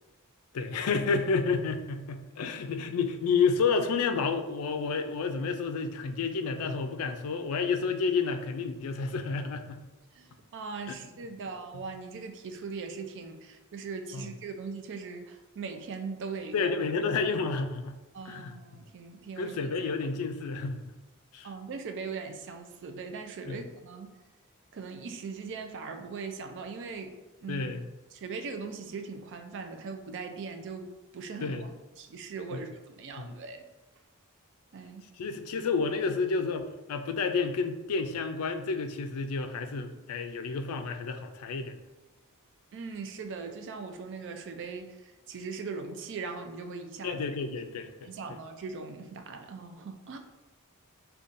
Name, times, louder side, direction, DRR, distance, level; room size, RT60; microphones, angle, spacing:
voice 1, 0.5-9.8 10.9-11.0 14.1-14.2 16.5-17.9 18.3-18.5 19.4-20.8 21.3-21.5 23.5-23.6 27.5-27.8 31.4-31.6 32.5-32.6 35.2-41.7 47.0-48.1, left 4 dB, 85° left, 8 dB, 0.4 m, -30 dB
voice 2, 10.1-16.8 17.1-17.2 18.1-19.7 21.4-24.1 24.7-27.7 28.1-31.7 32.0-33.7 34.7-35.0 42.7-47.3 48.0-50.2, right 4 dB, 55° right, 6 dB, 0.4 m, -40 dB
5.2 x 2.3 x 2.5 m, 1.1 s
head